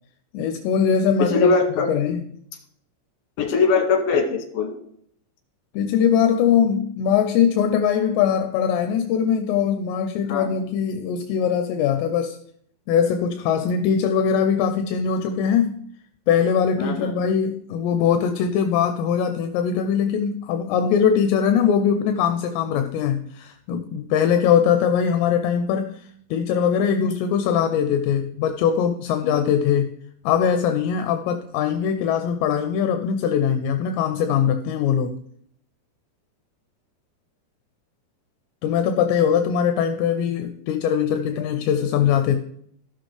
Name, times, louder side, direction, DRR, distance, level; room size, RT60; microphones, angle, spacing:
voice 1, 0.3-1.5 1.9-2.2 5.7-12.4 12.9-15.8 16.3-26.0 26.3-29.9 30.3-35.2 38.6-42.4, left 8 dB, 85° left, 7 dB, 2.8 m, -21 dB
voice 2, 1.2-1.9 3.4-4.7 10.3-10.4 13.6-13.7 16.8-17.1 22.7-22.9 29.2-29.5, left 4 dB, 60° left, 2 dB, 3.3 m, -21 dB
15.5 x 6.1 x 3.3 m, 0.67 s
omnidirectional pair, 5.1 m